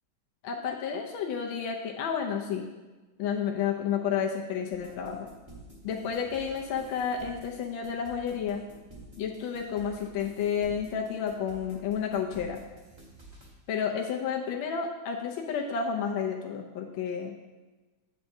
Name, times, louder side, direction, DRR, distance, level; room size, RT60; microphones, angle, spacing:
voice 1, 0.4-2.7 3.2-5.3 5.8-8.6 9.2-12.6 13.7-17.3, left 7 dB, 75° left, 1 dB, 1.3 m, -31 dB
sound 1, 4.7-13.5, right 2 dB, 20° right, 0.9 m, -50 dB
8.1 x 7.4 x 2.6 m, 1.2 s
omnidirectional pair, 2.3 m